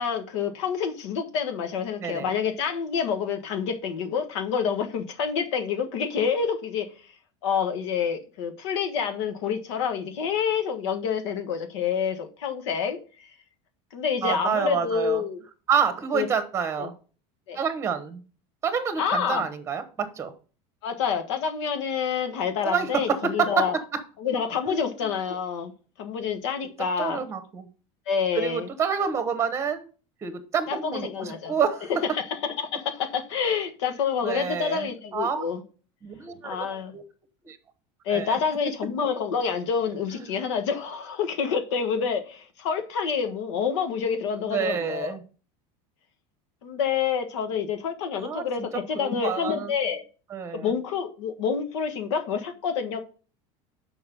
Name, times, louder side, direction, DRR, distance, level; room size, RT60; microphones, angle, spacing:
voice 1, 0.0-6.9 7.4-13.3 13.9-15.4 16.1-16.3 16.8-16.9 17.5-17.6 19.0-19.5 20.8-23.8 24.2-25.7 26.0-27.2 28.1-28.7 30.7-31.5 32.1-35.6 36.4-36.9 38.0-45.1 46.6-50.0 50.5-53.0, left 6 dB, 90° left, 1.4 m, -28 dB
voice 2, 2.0-2.3 14.2-15.2 15.7-16.9 17.5-18.2 18.6-20.3 22.6-23.7 23.9-24.0 24.7-24.8 25.0-25.1 27.0-27.7 28.3-29.8 30.2-31.9 34.2-35.4 36.0-36.6 36.9-37.0 37.4-37.6 38.1-38.4 40.1-40.3 44.4-45.2 48.2-48.4 48.9-49.7 50.3-50.7, right 6 dB, 20° right, 1.2 m, -28 dB
6.9 x 5.4 x 5.4 m
cardioid pair, 160°, 15 cm